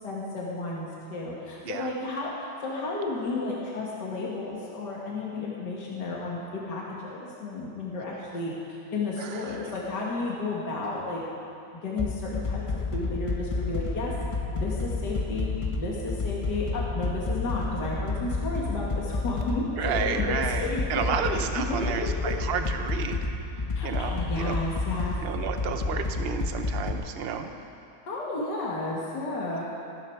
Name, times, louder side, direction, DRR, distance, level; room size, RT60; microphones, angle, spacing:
voice 1, 0.0-11.2 11.8-12.6 12.9-14.2 14.5-22.4 23.8-25.2 28.1-29.6, left 3 dB, 70° left, -4 dB, 2.5 m, -32 dB
sound 1, 12.0-26.9, left 3 dB, 45° left, 0.4 m, -30 dB
voice 2, 19.8-23.2 23.8-24.5 25.2-27.5, right 7 dB, 50° right, 6 dB, 0.8 m, -31 dB
14.5 x 13.5 x 4.7 m, 2.6 s
omnidirectional pair, 1.9 m